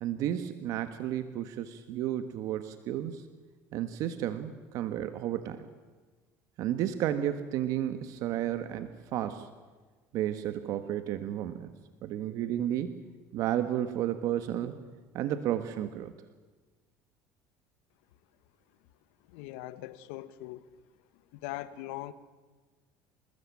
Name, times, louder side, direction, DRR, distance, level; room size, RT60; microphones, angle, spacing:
voice 1, 0.0-3.2 3.7-5.6 6.6-9.5 10.1-11.7 12.0-13.0 13.3-14.8 15.1-16.1, right 11 dB, 60° right, 10 dB, 1.4 m, -32 dB
voice 2, 19.3-20.7 21.3-22.1, left 16 dB, 85° left, 14 dB, 1.5 m, -41 dB
27.5 x 19.5 x 8.6 m, 1.3 s
cardioid pair, 130°, 7 cm